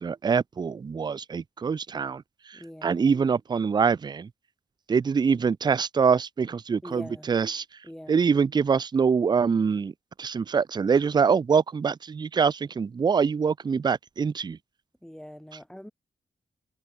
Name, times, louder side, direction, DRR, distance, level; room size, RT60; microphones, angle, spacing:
voice 1, 0.0-4.3 4.9-14.6, right 6 dB, 30° right, 0.4 m, -25 dB
voice 2, 2.5-3.0 6.8-7.3 7.8-8.2 15.0-15.9, equal, 5° left, 4.4 m, -43 dB
wide cardioid pair, 165°, 15 cm